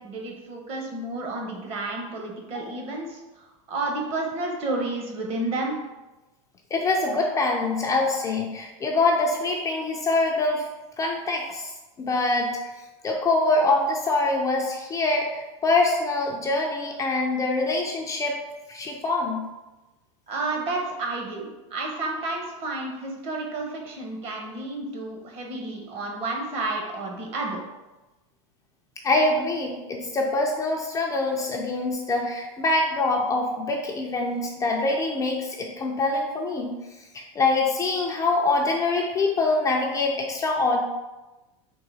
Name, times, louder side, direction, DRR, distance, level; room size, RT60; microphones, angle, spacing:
voice 1, 0.0-5.8 20.3-27.6, right 2 dB, 40° right, 0 dB, 1.0 m, -31 dB
voice 2, 6.7-10.7 11.0-12.6 13.0-18.4 18.7-19.4 29.0-36.8 37.1-40.8, left 2 dB, 20° left, 0 dB, 0.4 m, -24 dB
3.9 x 2.7 x 4.0 m, 1.1 s
supercardioid pair, 130°, 16 cm